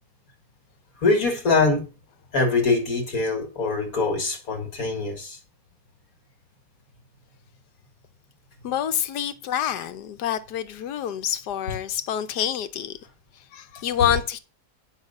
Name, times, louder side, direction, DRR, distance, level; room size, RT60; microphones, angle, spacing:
voice 1, 1.0-1.8 2.3-5.4, left 3 dB, 60° left, 2.2 m, -23 dB
voice 2, 8.6-13.0 13.5-14.4, left 10 dB, 90° left, 1.4 m, -27 dB
10.0 x 5.7 x 5.4 m
omnidirectional pair, 1.7 m